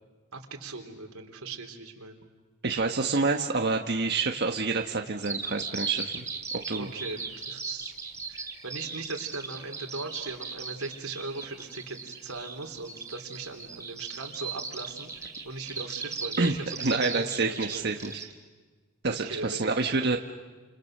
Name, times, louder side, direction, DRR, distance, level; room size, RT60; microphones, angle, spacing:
voice 1, 0.3-2.2 6.7-7.9 8.3-18.3 19.0-20.2, right 3 dB, 85° right, 3 dB, 3.8 m, -39 dB
voice 2, 2.6-6.2 6.7-6.9 16.4-16.5 16.8-18.2 19.0-20.2, right 3 dB, 50° right, 3 dB, 1.4 m, -27 dB
Bird vocalization bird call bird song, 5.2-18.2, right 4 dB, 15° right, 3.3 m, -38 dB
30.0 x 28.5 x 6.7 m, 1.4 s
head